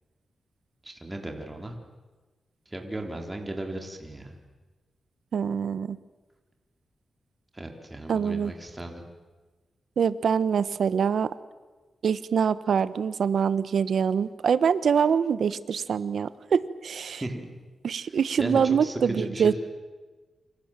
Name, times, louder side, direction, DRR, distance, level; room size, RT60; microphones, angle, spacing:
voice 1, 0.8-1.7 2.7-4.4 7.5-9.0 17.2-17.5 18.0-18.1 18.4-19.5, right 1 dB, 15° right, 3 dB, 4.0 m, -35 dB
voice 2, 5.3-6.0 8.1-8.5 10.0-11.3 12.0-17.2 17.8-19.5, right 7 dB, 75° right, 15 dB, 1.1 m, -24 dB
29.0 x 26.0 x 7.6 m, 1.3 s
wide cardioid pair, 100°, 0 cm